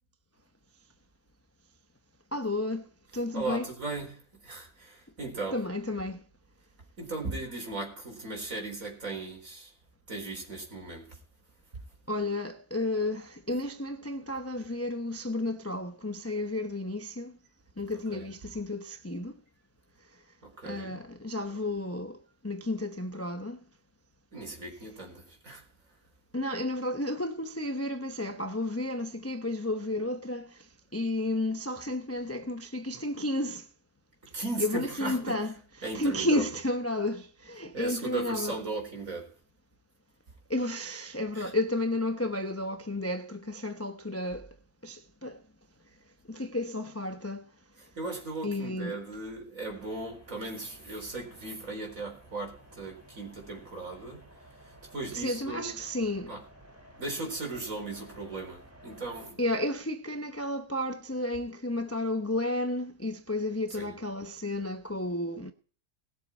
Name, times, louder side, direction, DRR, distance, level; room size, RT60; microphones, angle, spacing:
voice 1, 2.3-2.8 3.1-3.7 5.5-6.2 12.1-17.3 17.8-19.3 20.6-22.2 22.4-23.6 26.3-30.5 30.9-33.6 34.6-35.5 35.8-38.6 40.5-44.5 44.8-45.4 46.3-47.5 48.4-49.0 55.1-56.3 59.4-65.5, left 1 dB, 15° left, 0.6 m, -32 dB
voice 2, 3.3-5.6 7.0-9.7 10.1-11.2 18.1-18.3 20.4-21.0 24.3-25.7 34.3-35.4 35.8-36.4 37.7-39.3 41.3-41.5 47.8-54.2 54.6-55.8 56.3-56.4 57.0-59.4 63.7-64.0, right 3 dB, 60° right, 4.6 m, -37 dB
sound 1, 49.7-59.3, right 1 dB, 10° right, 2.6 m, -54 dB
19.5 x 7.5 x 4.4 m
omnidirectional pair, 1.6 m